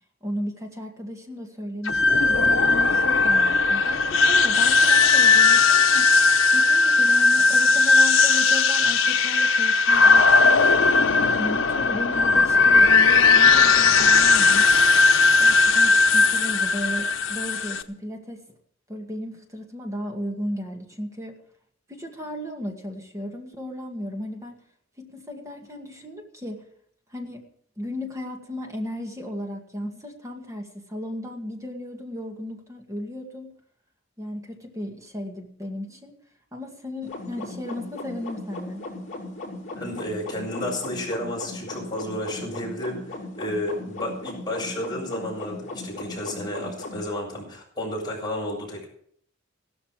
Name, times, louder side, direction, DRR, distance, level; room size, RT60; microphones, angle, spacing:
voice 1, 0.2-10.7 11.4-14.7 15.4-18.4 18.9-21.4 21.9-24.6 25.0-26.6 27.1-27.5 27.8-33.5 34.2-36.2 36.5-38.8, left 1 dB, 15° right, 2 dB, 2.0 m, -35 dB
sound 1, 1.8-17.8, left 4 dB, 80° left, 1.0 m, -18 dB
sound 2, 37.0-47.0, left 2 dB, 40° left, 7.1 m, -37 dB
voice 2, 39.7-48.9, left 1 dB, 20° left, -3 dB, 7.2 m, -32 dB
16.0 x 13.5 x 4.9 m, 0.63 s
head